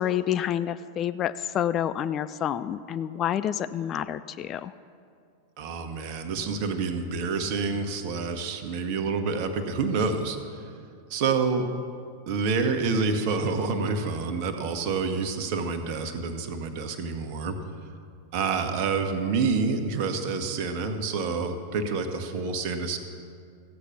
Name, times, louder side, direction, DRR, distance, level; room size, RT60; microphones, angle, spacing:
voice 1, 0.0-4.7, left 10 dB, 30° left, 14 dB, 0.3 m, -28 dB
voice 2, 5.6-10.7 11.1-11.7 12.3-17.6 18.3-23.0, right 4 dB, 45° right, 7 dB, 1.2 m, -28 dB
15.0 x 8.3 x 5.9 m, 2.3 s
figure-of-eight pair, 90°, 0 cm